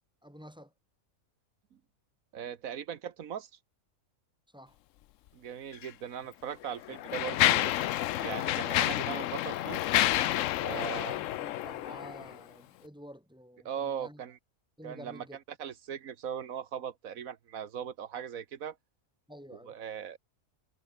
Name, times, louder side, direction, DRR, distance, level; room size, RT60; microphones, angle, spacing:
voice 1, 0.2-0.7 4.5-4.8 10.5-14.2 14.8-15.4 19.3-19.7, equal, 5° right, 3.6 m, -50 dB
voice 2, 2.3-3.5 5.3-7.7 8.2-9.8 10.6-11.1 13.6-14.4 14.8-15.2 15.6-18.8 19.5-20.2, right 8 dB, 85° right, 1.6 m, -39 dB
Mechanisms, 5.7-5.9 6.6-12.4, left 14 dB, 75° left, 0.9 m, -29 dB
omnidirectional pair, 1.4 m